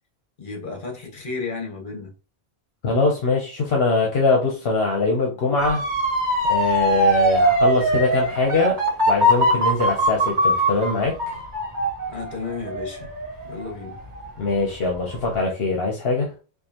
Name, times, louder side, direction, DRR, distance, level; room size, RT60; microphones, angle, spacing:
voice 1, 0.4-2.1 12.1-13.1 13.4-14.0, left 4 dB, 55° left, 1.3 m, -33 dB
voice 2, 2.8-5.8 6.5-8.8 9.1-11.2 14.4-16.3, left 3 dB, 75° left, 1.0 m, -22 dB
Motor vehicle (road) / Siren, 5.6-14.5 14.9-15.3, right 1 dB, 50° right, 1.3 m, -22 dB
4.6 x 2.6 x 2.8 m
omnidirectional pair, 1.0 m